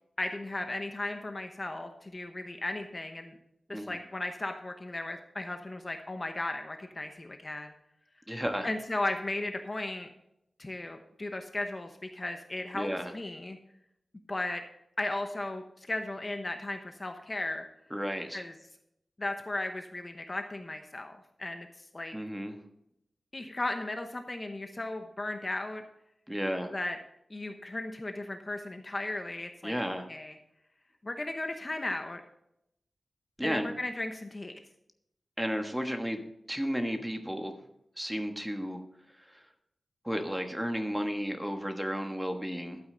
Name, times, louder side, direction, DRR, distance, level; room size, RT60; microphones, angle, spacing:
voice 1, 0.2-3.4 3.7-7.7 8.6-10.1 10.6-13.6 14.3-14.6 15.0-17.7 18.3-18.5 19.2-22.2 23.3-25.8 26.7-27.0 27.3-29.7 30.1-30.3 31.0-32.2 33.4-34.5, left 2 dB, 30° left, 5 dB, 0.9 m, -36 dB
voice 2, 8.3-8.7 12.7-13.1 17.9-18.4 22.1-22.6 26.3-26.7 29.6-30.1 33.4-33.7 35.4-36.2 36.5-37.5 38.0-38.8 39.2-39.4 40.0-42.8, equal, 5° right, 5 dB, 1.3 m, -33 dB
12.0 x 8.9 x 3.9 m, 0.77 s
wide cardioid pair, 120°, 0 cm